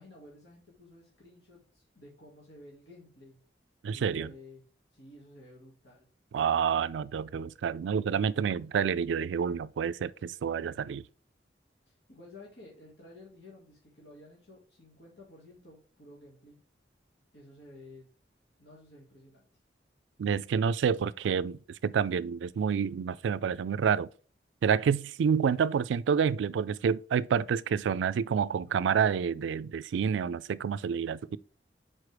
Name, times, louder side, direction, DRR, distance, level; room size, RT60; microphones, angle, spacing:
voice 1, 0.0-3.4 3.8-4.6 4.9-6.1 11.9-16.6 17.3-18.1 18.6-19.4, left 1 dB, 75° left, 1.8 m, -53 dB
voice 2, 3.8-4.3 6.3-11.1 20.2-24.1 24.6-31.4, right 7 dB, 85° right, 0.3 m, -28 dB
4.9 x 4.4 x 4.6 m
head